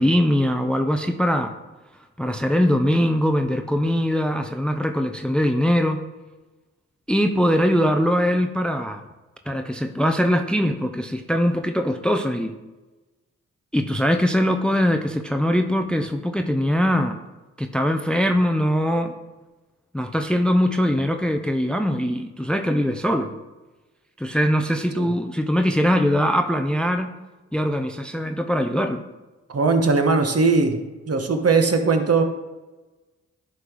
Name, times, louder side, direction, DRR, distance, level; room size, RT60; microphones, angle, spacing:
voice 1, 0.0-1.5 2.2-6.1 7.1-9.0 9.5-12.5 13.7-17.2 17.6-19.1 19.9-23.3 24.2-27.2 27.5-29.0, equal, 5° left, 7 dB, 0.6 m, -21 dB
voice 2, 29.5-30.8 31.1-32.2, right 4 dB, 45° right, 5 dB, 1.2 m, -19 dB
10.0 x 3.8 x 4.7 m, 1.2 s
supercardioid pair, 40°, 33 cm